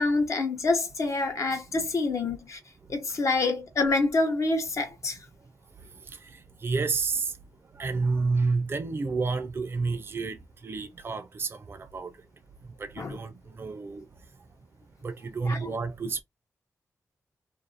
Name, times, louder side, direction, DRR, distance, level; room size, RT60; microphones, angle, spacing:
voice 1, 0.0-2.6 2.9-5.2 13.0-13.2 15.5-15.7, left 3 dB, 60° left, 0.7 m, -27 dB
voice 2, 6.3-7.3 7.8-10.4 10.6-12.1 12.8-13.3 13.6-14.1 15.0-16.2, right 4 dB, 40° right, 0.4 m, -30 dB
2.5 x 2.4 x 2.6 m
cardioid pair, 80°, 6 cm